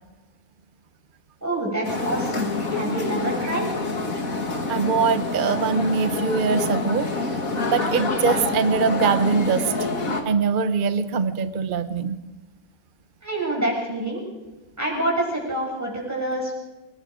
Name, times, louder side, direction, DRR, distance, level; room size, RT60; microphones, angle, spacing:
voice 1, 1.4-3.8 13.2-14.2 14.8-16.5, right 1 dB, 10° right, -2 dB, 6.3 m, -27 dB
sound 1, 1.8-10.2, left 3 dB, 55° left, 2.7 m, -27 dB
voice 2, 4.7-7.1 7.7-9.7 10.2-12.2, right 5 dB, 35° right, 11 dB, 0.9 m, -22 dB
26.5 x 19.5 x 5.1 m, 1.1 s
omnidirectional pair, 1.8 m